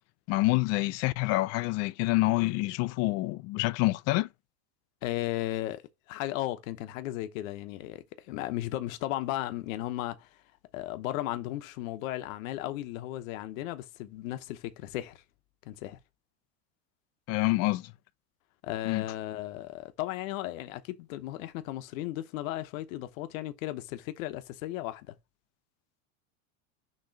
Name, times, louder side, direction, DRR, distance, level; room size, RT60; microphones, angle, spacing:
voice 1, 0.3-4.3 17.3-17.9 18.9-19.0, left 20 dB, 40° left, 0.4 m, -27 dB
voice 2, 5.0-5.8 6.1-10.4 10.7-15.2 15.6-16.0 18.6-25.1, left 15 dB, 80° left, 0.9 m, -35 dB
6.5 x 3.0 x 5.7 m
supercardioid pair, 135°, 40 cm